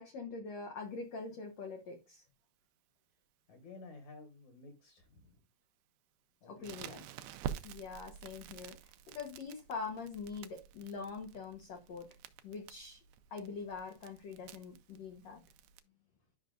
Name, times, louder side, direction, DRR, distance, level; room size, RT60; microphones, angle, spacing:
voice 1, 0.0-2.2 6.5-7.0 7.6-12.1 12.4-13.0 13.3-15.4, left 4 dB, 85° left, 1.5 m, -44 dB
voice 2, 3.5-5.4 6.4-6.9, left 3 dB, 60° left, 2.2 m, -53 dB
Crackle, 6.6-15.8, right 9 dB, 80° right, 2.2 m, -49 dB
11.5 x 5.7 x 2.5 m
omnidirectional pair, 4.8 m